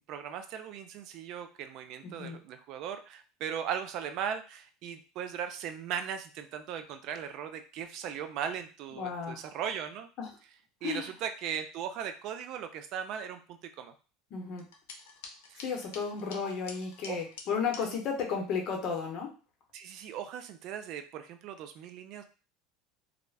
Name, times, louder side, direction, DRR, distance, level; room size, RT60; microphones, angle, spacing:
voice 1, 0.1-10.1 10.8-13.9 15.5-15.6 17.1-17.2 19.7-22.2, right 8 dB, 50° right, 8 dB, 0.3 m, -38 dB
voice 2, 2.0-2.4 8.9-9.4 10.2-10.3 10.8-11.1 14.3-14.7 15.6-19.3, left 6 dB, 45° left, 2 dB, 0.8 m, -34 dB
sound 1, 14.6-17.8, left 4 dB, 85° left, 0.5 m, -48 dB
2.4 x 2.1 x 3.3 m, 0.35 s
supercardioid pair, 135°, 0 cm